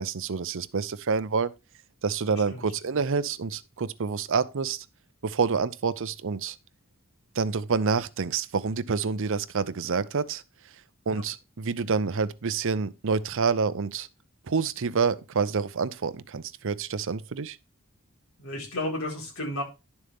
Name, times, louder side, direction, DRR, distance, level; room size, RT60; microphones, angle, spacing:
voice 1, 0.0-1.5 2.0-4.9 5.2-6.6 7.3-10.4 11.1-14.1 14.5-17.6, right 5 dB, 60° right, 0.6 m, -28 dB
voice 2, 2.3-2.7 11.1-11.2 18.4-19.6, left 1 dB, 70° left, 4.5 m, -33 dB
11.0 x 7.1 x 3.5 m
head